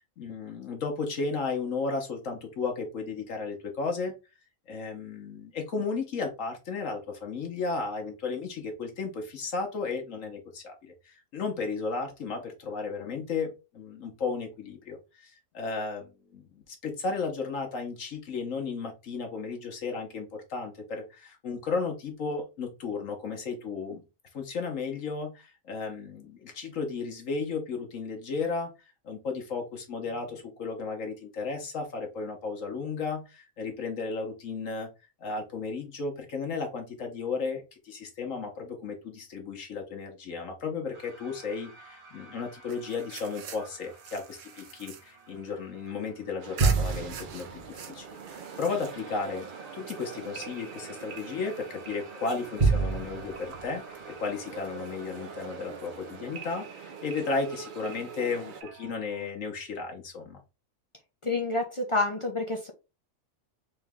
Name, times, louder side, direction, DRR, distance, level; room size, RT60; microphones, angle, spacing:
voice 1, 0.2-4.2 4.7-24.0 24.3-34.9 35.2-49.5 49.7-60.4, left 4 dB, 70° left, 3 dB, 1.3 m, -34 dB
sound 1, 40.9-59.3, right 3 dB, 30° right, 1.0 m, -36 dB
sound 2, 42.7-46.1 46.6-49.3, right 7 dB, 70° right, 1.1 m, -44 dB
sound 3, 46.4-58.6, right 6 dB, 55° right, 0.6 m, -44 dB
voice 2, 61.2-62.7, left 2 dB, 40° left, 1 dB, 0.4 m, -28 dB
3.8 x 3.1 x 3.5 m, 0.28 s
omnidirectional pair, 1.4 m